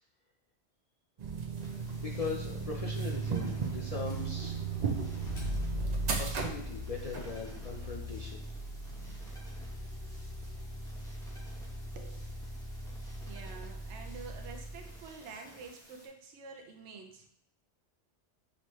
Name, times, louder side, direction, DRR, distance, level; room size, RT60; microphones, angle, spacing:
sound 1, 1.2-7.3, right 6 dB, 50° right, 0.5 m, -35 dB
sound 2, 1.6-16.1, equal, 5° left, 0.8 m, -56 dB
voice 1, 2.0-4.6 5.7-8.4, left 4 dB, 45° left, -2 dB, 0.5 m, -40 dB
Motor vehicle (road), 4.0-15.2, left 1 dB, 65° left, 1.3 m, -40 dB
voice 2, 11.9-12.4 12.9-13.0 13.2-17.3, right 4 dB, 80° right, 4 dB, 0.9 m, -48 dB
5.4 x 3.0 x 3.1 m, 0.71 s
omnidirectional pair, 1.2 m